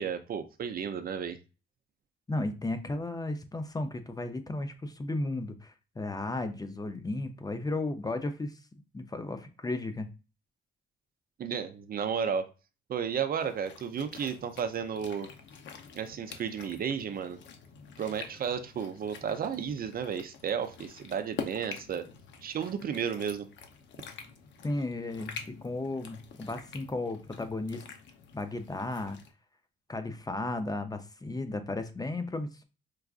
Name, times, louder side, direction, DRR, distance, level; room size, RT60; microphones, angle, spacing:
voice 1, 0.0-1.4 11.4-12.5 12.9-15.3 15.9-17.4 18.0-22.1 22.4-23.5, right 7 dB, 50° right, 9 dB, 0.5 m, -33 dB
voice 2, 2.3-8.6 8.9-10.1 24.6-27.8 28.3-29.2 29.9-32.6, left 2 dB, 20° left, 8 dB, 0.5 m, -34 dB
sound 1, 13.4-29.3, left 6 dB, 65° left, 0.7 m, -47 dB
4.6 x 2.4 x 2.4 m, 0.31 s
cardioid pair, 90°, 20 cm